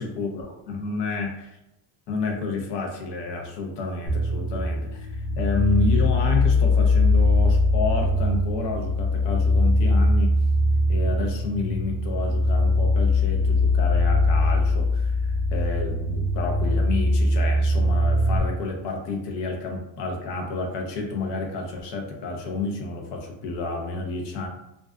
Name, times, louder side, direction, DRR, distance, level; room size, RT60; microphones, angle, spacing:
voice 1, 0.0-1.6 2.1-10.3 10.9-24.5, left 3 dB, 65° left, 2 dB, 0.7 m, -30 dB
sound 1, 4.1-18.4, left 2 dB, 15° right, 0.4 m, -21 dB
2.5 x 2.2 x 2.4 m, 0.87 s
cardioid pair, 165°, 47 cm